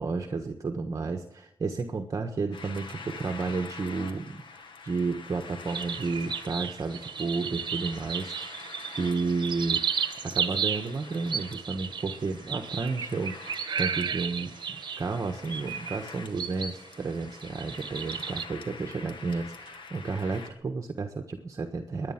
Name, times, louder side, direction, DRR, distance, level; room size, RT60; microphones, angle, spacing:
voice 1, 0.0-8.6 9.0-9.8 10.2-22.1, right 4 dB, 40° right, 4 dB, 1.4 m, -32 dB
sound 1, 2.5-20.5, left 4 dB, 70° left, 2.0 m, -46 dB
sound 2, 5.7-16.9 17.2-18.5, right 7 dB, 60° right, 1.2 m, -34 dB
21.5 x 10.0 x 5.9 m, 0.82 s
wide cardioid pair, 115°, 9 cm